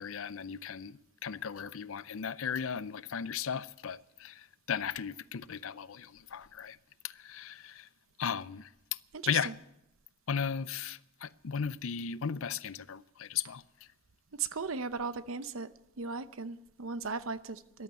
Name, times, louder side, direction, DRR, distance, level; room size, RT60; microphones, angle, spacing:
voice 1, 0.0-6.8 7.0-7.9 8.2-8.7 9.3-9.5 10.3-13.6, left 7 dB, 70° left, 0.5 m, -36 dB
voice 2, 9.1-9.5 14.4-15.7 16.0-17.8, right 4 dB, 75° right, 0.8 m, -37 dB
14.5 x 12.0 x 8.2 m
head